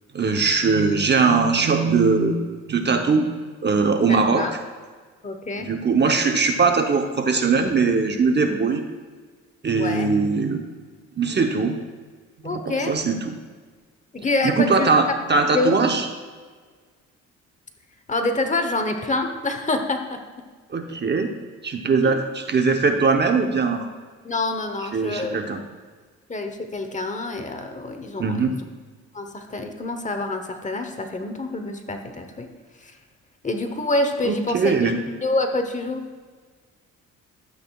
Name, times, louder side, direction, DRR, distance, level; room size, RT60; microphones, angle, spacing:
voice 1, 0.1-3.3 3.6-4.4 5.6-8.8 9.6-10.6 11.2-11.8 12.4-13.3 14.4-16.0 20.7-21.3 21.6-23.9 24.9-25.6 28.2-28.6 34.3-35.0, right 4 dB, 35° right, 5 dB, 0.8 m, -21 dB
voice 2, 4.1-4.5 5.2-5.7 9.8-10.1 12.4-13.0 14.1-15.2 15.5-15.7 18.1-20.2 22.0-22.2 24.2-25.4 26.3-28.4 29.1-32.5 32.8-33.0 33.4-35.0 35.2-36.0, left 2 dB, 25° left, 6 dB, 1.0 m, -26 dB
12.0 x 8.1 x 2.3 m, 1.5 s
cardioid pair, 90°, 30 cm